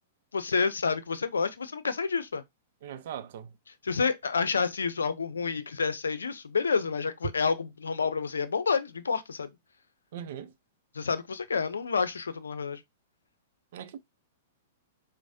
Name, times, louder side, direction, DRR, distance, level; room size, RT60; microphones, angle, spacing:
voice 1, 0.3-2.4 3.8-9.5 10.9-12.8, left 5 dB, 85° left, 0.5 m, -29 dB
voice 2, 2.8-3.5 10.1-10.5 13.7-14.0, right 9 dB, 60° right, 0.5 m, -40 dB
4.6 x 2.1 x 2.7 m
hypercardioid pair, 115°, 0 cm